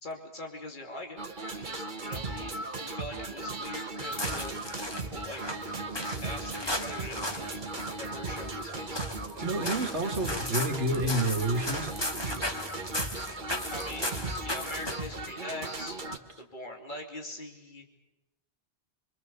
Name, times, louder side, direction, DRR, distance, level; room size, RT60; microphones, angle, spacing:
voice 1, 0.0-1.2 1.5-2.5 2.8-4.8 5.1-5.4 6.2-7.6 7.9-9.0 13.7-16.0 16.4-17.9, left 1 dB, 45° left, 2 dB, 2.8 m, -42 dB
sound 1, 1.2-16.2, right 3 dB, 45° right, 1.6 m, -37 dB
sound 2, 4.1-15.2, left 1 dB, 20° left, 1.7 m, -37 dB
voice 2, 9.4-11.9, right 1 dB, 80° right, 3 dB, 2.4 m, -29 dB
25.0 x 24.0 x 6.8 m, 1.0 s
omnidirectional pair, 1.1 m